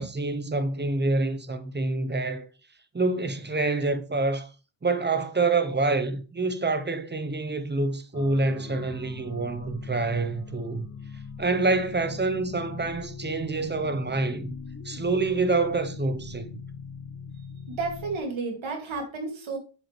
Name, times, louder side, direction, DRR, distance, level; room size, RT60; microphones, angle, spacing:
voice 1, 0.0-2.5 2.9-4.5 4.8-10.9 11.4-14.5 14.8-16.5, right 3 dB, 20° right, 1.0 m, -27 dB
sound 1, 8.1-18.2, left 6 dB, 30° left, 1.3 m, -41 dB
voice 2, 17.7-19.6, right 3 dB, 75° right, 2.8 m, -32 dB
7.7 x 7.2 x 3.3 m
cardioid pair, 70°, 48 cm